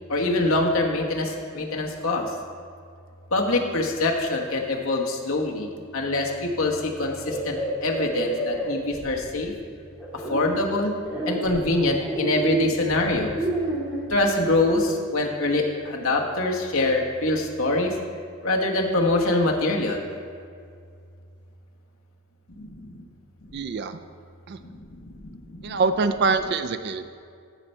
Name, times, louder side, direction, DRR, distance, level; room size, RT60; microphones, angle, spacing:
voice 1, 0.1-2.2 3.3-9.5 10.3-10.9 11.3-13.4 14.1-17.9 18.4-20.1 22.5-23.0 24.6-25.8, left 2 dB, 65° left, 0 dB, 1.2 m, -24 dB
sound 1, 7.2-9.5 10.0-10.5 11.0-14.2, right 2 dB, 5° right, 1.7 m, -29 dB
voice 2, 23.5-24.0 24.5-24.6 25.6-27.1, right 4 dB, 45° right, 10 dB, 0.3 m, -24 dB
14.5 x 5.4 x 4.5 m, 2.3 s
head